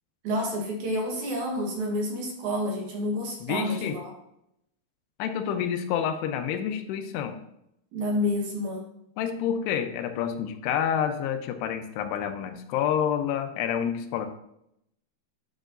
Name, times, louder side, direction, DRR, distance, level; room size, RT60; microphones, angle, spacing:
voice 1, 0.2-4.1 7.9-8.9, left 1 dB, 60° right, 0 dB, 2.2 m, -29 dB
voice 2, 3.4-4.0 5.2-7.4 9.2-14.3, left 8 dB, 90° left, 7 dB, 2.8 m, -28 dB
10.0 x 6.1 x 2.6 m, 0.78 s
omnidirectional pair, 4.7 m